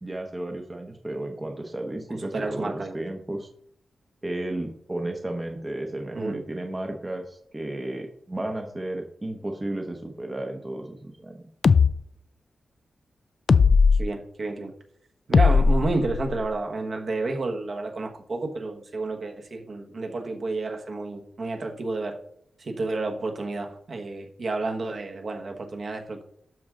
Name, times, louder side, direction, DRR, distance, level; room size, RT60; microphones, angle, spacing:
voice 1, 0.0-3.5 4.2-11.5, right 1 dB, 20° right, 3 dB, 0.9 m, -33 dB
voice 2, 2.1-3.0 6.1-6.4 13.9-14.7 15.3-22.2 22.6-26.2, right 3 dB, 50° right, 3 dB, 1.2 m, -30 dB
sound 1, 11.6-11.9 13.5-14.0 15.3-16.5, left 5 dB, 50° left, 0.3 m, -18 dB
12.5 x 6.2 x 3.7 m, 0.70 s
wide cardioid pair, 160°, 0 cm